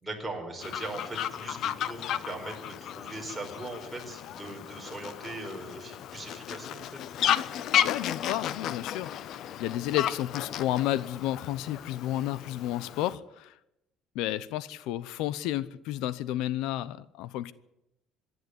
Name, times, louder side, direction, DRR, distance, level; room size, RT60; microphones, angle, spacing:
voice 1, 0.0-6.9, right 2 dB, 5° right, 4.8 m, -40 dB
Fowl, 0.6-13.2, left 10 dB, 55° left, 0.7 m, -33 dB
voice 2, 7.8-13.5 14.1-17.5, left 13 dB, 85° left, 0.8 m, -31 dB
26.0 x 11.0 x 9.7 m
cardioid pair, 160°, 0 cm